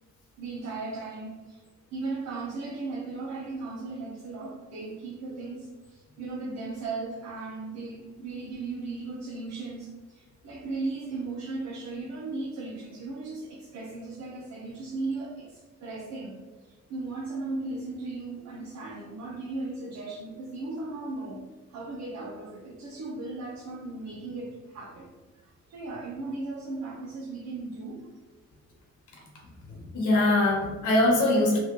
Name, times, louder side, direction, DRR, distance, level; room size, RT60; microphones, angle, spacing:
voice 1, 0.4-1.6 1.9-16.4 16.6-21.4 21.7-25.1 25.7-28.1, right 3 dB, 60° right, -4 dB, 0.7 m, -36 dB
voice 2, 29.7-31.6, left 1 dB, 80° left, -3 dB, 1.1 m, -23 dB
2.9 x 2.5 x 3.0 m, 1.3 s
cardioid pair, 90°, 30 cm